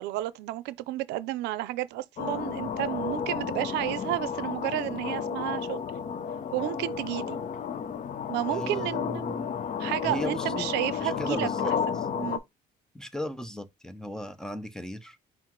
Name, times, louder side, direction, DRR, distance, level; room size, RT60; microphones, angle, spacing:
voice 1, 0.0-5.8 6.5-7.4 8.3-9.3 9.8-11.7 12.2-12.4, right 15 dB, 90° right, 0.5 m, -31 dB
sound 1, 2.2-12.4, left 7 dB, 45° left, 0.7 m, -32 dB
voice 2, 8.5-9.6 10.0-10.7 11.0-12.1 12.9-15.2, equal, 5° left, 0.7 m, -37 dB
5.7 x 2.0 x 4.5 m
cardioid pair, 110°, 17 cm